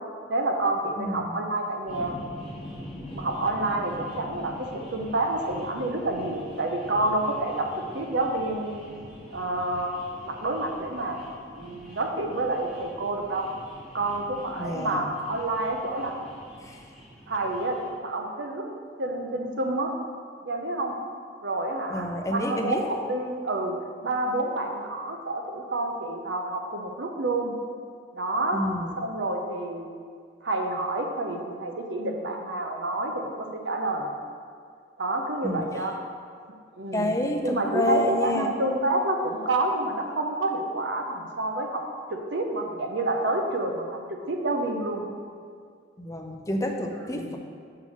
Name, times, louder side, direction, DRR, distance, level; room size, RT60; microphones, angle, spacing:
voice 1, 0.3-2.2 3.1-7.7 7.9-8.8 9.3-11.2 11.5-13.5 13.9-16.1 17.3-17.8 18.0-18.7 19.0-19.9 20.4-20.9 21.4-23.8 24.0-27.5 28.1-28.6 29.0-29.9 30.4-34.1 35.0-36.0 36.8-37.2 37.4-41.8 42.1-44.0 44.3-45.1 47.0-47.4, right 2 dB, 80° right, 3 dB, 0.8 m, -28 dB
voice 2, 1.0-1.4 14.6-15.0 16.6-16.8 21.9-22.8 28.5-28.9 35.4-35.7 36.9-38.5 46.0-47.4, left 1 dB, 15° left, 2 dB, 0.5 m, -29 dB
sound 1, 1.9-17.9, equal, ahead, 1.4 m, -44 dB
6.6 x 3.7 x 6.2 m, 2.2 s
head